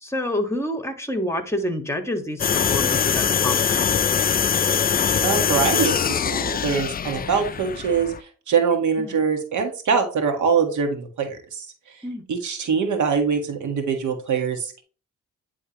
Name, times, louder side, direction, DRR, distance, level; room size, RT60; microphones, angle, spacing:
voice 1, 0.0-3.9 9.0-9.3 12.0-12.2, left 1 dB, 10° left, 6 dB, 1.7 m, -28 dB
sound 1, 2.4-8.2, left 7 dB, 30° left, 0.4 m, -22 dB
voice 2, 5.2-6.0 6.3-11.7 12.3-14.8, right 6 dB, 65° right, 5 dB, 1.7 m, -23 dB
9.9 x 3.6 x 3.0 m, 0.37 s
supercardioid pair, 65°, 32 cm